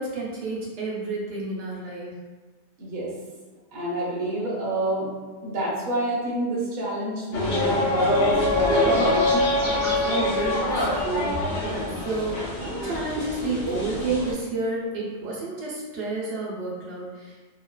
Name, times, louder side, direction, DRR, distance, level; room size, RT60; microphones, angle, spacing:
voice 1, 0.0-2.2 9.8-17.4, right 3 dB, 80° right, -6 dB, 1.0 m, -31 dB
voice 2, 2.8-3.2 3.7-5.1 5.4-9.2, right 1 dB, 45° right, -6 dB, 0.8 m, -28 dB
sound 1, 7.3-14.3, left 1 dB, 65° left, 0.8 m, -24 dB
2.8 x 2.3 x 2.2 m, 1.3 s
omnidirectional pair, 1.2 m